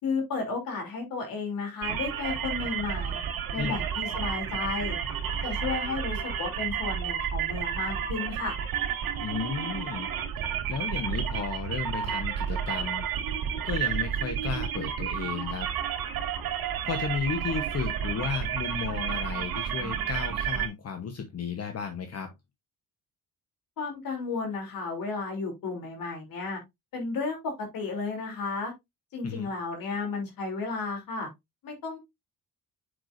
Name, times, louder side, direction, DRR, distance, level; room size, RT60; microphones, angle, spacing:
voice 1, 0.0-3.2 3.5-5.0 5.4-8.6 23.8-26.6 26.9-28.7 29.1-31.3 31.6-32.0, left 4 dB, 75° left, 3.3 m, -33 dB
sound 1, 1.8-20.7, right 8 dB, 85° right, 2.1 m, -31 dB
voice 2, 9.2-10.1 10.7-13.1 13.6-15.7 16.8-22.3 29.2-29.5, left 6 dB, 45° left, 1.1 m, -33 dB
7.9 x 6.0 x 2.6 m
cardioid pair, 130°, 35 cm